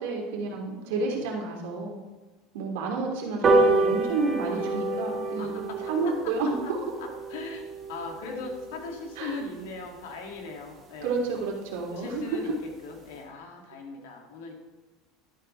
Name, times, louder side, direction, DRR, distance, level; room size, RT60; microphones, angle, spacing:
voice 1, 0.0-2.0 2.5-5.5 5.9-6.8 9.2-9.4 11.0-12.2, right 3 dB, 80° right, 0 dB, 2.8 m, -30 dB
voice 2, 0.9-1.2 4.5-5.5 6.6-6.7 7.0-11.2 11.9-14.5, left 3 dB, 90° left, 1 dB, 2.4 m, -40 dB
sound 1, 3.4-10.2 10.6-10.7 11.0-11.1 11.4-11.5 11.8-11.9 12.2-12.5 12.9-13.0, right 2 dB, 20° right, 1.4 m, -28 dB
12.0 x 11.0 x 3.4 m, 1.2 s
cardioid pair, 175°, 0 cm